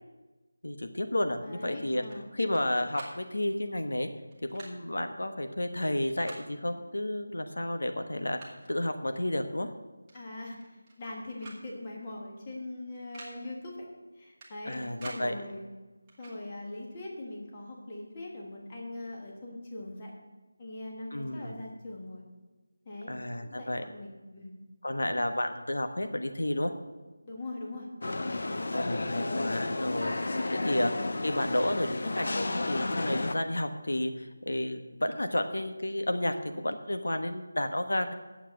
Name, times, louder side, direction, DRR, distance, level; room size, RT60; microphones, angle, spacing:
voice 1, 0.6-2.0 2.3-4.1 4.5-8.4 8.7-9.7 14.6-15.3 21.1-21.6 23.1-23.8 24.8-26.7 28.7-30.1 30.6-38.1, left 1 dB, 80° left, 7 dB, 1.2 m, -31 dB
voice 2, 1.4-2.3 10.1-13.8 14.1-15.7 16.2-20.1 20.6-22.2 22.8-24.5 27.2-27.9 28.4-28.7, left 2 dB, 15° left, -2 dB, 1.4 m, -41 dB
sound 1, 2.0-2.6 2.9-3.2 4.3-4.7 6.0-6.4 7.5-7.6 8.0-8.7 10.1-10.2 10.5-11.1 11.4-11.6 11.9-12.0 12.9-13.3 14.4-15.2 16.1-16.4, right 2 dB, 10° right, 1.3 m, -48 dB
sound 2, 28.0-33.3, left 2 dB, 40° left, 0.7 m, -32 dB
9.1 x 7.4 x 7.8 m, 1.2 s
figure-of-eight pair, 180°, 0 cm